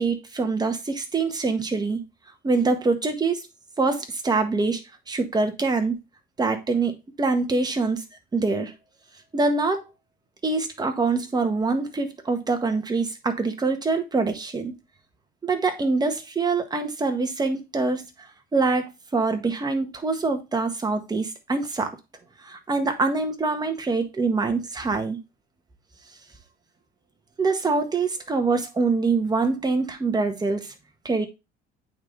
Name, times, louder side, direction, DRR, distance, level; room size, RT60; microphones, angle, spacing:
voice 1, 0.0-2.0 2.4-3.5 3.8-4.8 5.1-6.0 6.4-8.0 8.3-8.7 9.3-9.8 10.4-14.7 15.4-22.0 22.4-25.2 27.4-30.7 31.0-31.3, right 3 dB, 20° right, 1.6 m, -24 dB
8.7 x 4.1 x 3.3 m
cardioid pair, 110°, 20 cm